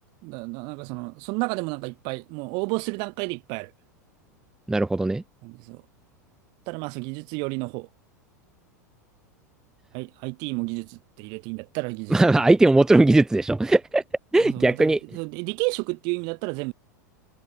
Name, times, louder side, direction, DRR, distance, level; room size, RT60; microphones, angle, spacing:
voice 1, 0.2-3.7 5.4-5.8 6.7-7.9 9.9-12.4 14.4-16.7, right 31 dB, 50° right, 5.2 m, -31 dB
voice 2, 4.7-5.2 12.1-14.0 14.3-15.0, right 2 dB, 5° right, 0.5 m, -19 dB
figure-of-eight pair, 85°, 10 cm